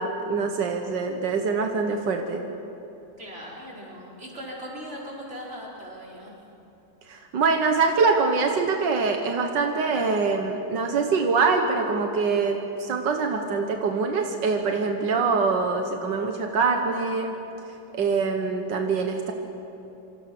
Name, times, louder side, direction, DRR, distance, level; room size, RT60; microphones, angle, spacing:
voice 1, 0.0-2.4 7.1-17.3 17.9-19.3, right 4 dB, 90° right, 4 dB, 2.0 m, -24 dB
voice 2, 3.2-6.3, equal, 40° right, -4 dB, 5.1 m, -39 dB
27.0 x 25.0 x 6.1 m, 3.0 s
omnidirectional pair, 1.9 m